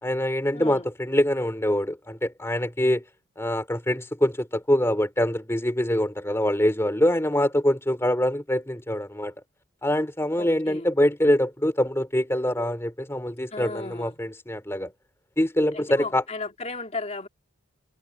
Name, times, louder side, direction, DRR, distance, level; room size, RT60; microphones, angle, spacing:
voice 1, 0.0-3.0 3.4-9.3 9.8-14.9 15.4-16.2, left 1 dB, 10° left, 2.9 m, -24 dB
voice 2, 0.5-0.9 10.4-10.9 13.5-14.2 15.7-17.3, left 3 dB, 30° left, 2.9 m, -35 dB
head